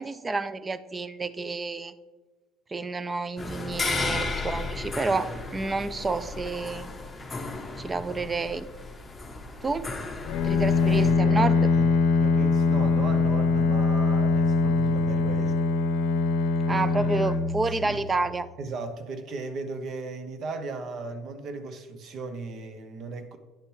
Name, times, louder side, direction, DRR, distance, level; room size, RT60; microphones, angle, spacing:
voice 1, 0.0-1.9 2.7-7.0 7.8-8.7 9.6-9.9 10.4-11.7 16.7-18.5, right 3 dB, 20° right, 0.4 m, -29 dB
sound 1, 3.4-11.1, left 3 dB, 15° left, 0.9 m, -34 dB
Bowed string instrument, 10.3-18.2, left 4 dB, 80° left, 0.6 m, -23 dB
voice 2, 10.9-15.6 16.7-17.1 17.7-18.0 18.6-23.4, right 3 dB, 45° right, 0.7 m, -37 dB
9.8 x 6.5 x 3.2 m
cardioid pair, 130°, 0 cm